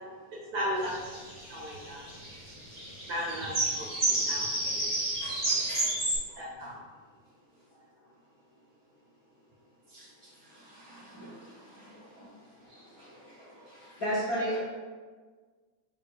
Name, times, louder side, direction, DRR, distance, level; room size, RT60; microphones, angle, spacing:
voice 1, 0.5-0.9 1.5-2.0 3.1-4.8 6.4-6.8, equal, 80° right, -5 dB, 1.2 m, -35 dB
sound 1, 0.8-6.2, right 1 dB, 35° right, 0.7 m, -30 dB
voice 2, 4.9-6.0 6.3-6.4 9.9-14.0, equal, 85° left, -10 dB, 0.8 m, -49 dB
voice 3, 12.6-13.3 14.0-14.6, equal, 60° left, -12 dB, 0.9 m, -32 dB
4.5 x 2.4 x 4.5 m, 1.5 s
omnidirectional pair, 3.4 m